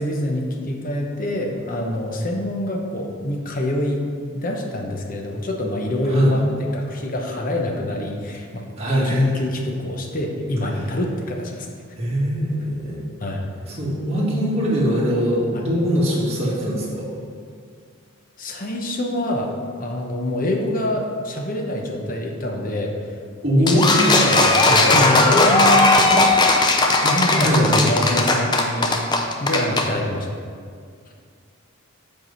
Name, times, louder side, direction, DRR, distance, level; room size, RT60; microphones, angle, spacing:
voice 1, 0.0-4.0 4.3-6.4 6.7-8.6 9.0-11.7 13.2-13.4 15.5-15.6 18.4-19.5 19.8-23.1 23.5-26.3 27.0-29.0 29.4-30.3, left 1 dB, 40° left, 1 dB, 0.8 m, -25 dB
voice 2, 8.8-9.2 12.0-13.0 13.8-17.1 23.4-24.0 27.4-27.7, equal, 30° right, -7 dB, 1.8 m, -21 dB
sound 1, 23.7-29.9, left 2 dB, 20° left, 0.5 m, -17 dB
7.7 x 4.7 x 5.5 m, 2.1 s
head